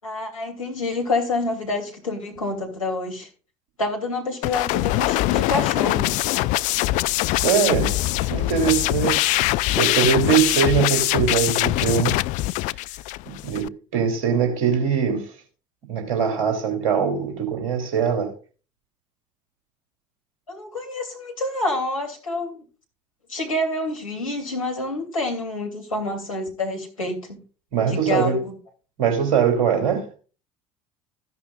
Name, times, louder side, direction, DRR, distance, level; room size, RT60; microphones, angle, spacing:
voice 1, 0.0-3.3 3.8-6.1 20.5-22.6 23.3-27.4 27.9-28.4, left 2 dB, 85° left, 2.9 m, -27 dB
sound 1, 4.4-13.7, left 18 dB, 50° left, 0.4 m, -23 dB
voice 2, 7.3-9.4 9.8-12.2 13.2-15.4 15.9-18.3 27.7-28.4 29.0-30.2, right 7 dB, 60° right, 3.2 m, -22 dB
14.0 x 11.0 x 2.4 m
figure-of-eight pair, 65°, 17 cm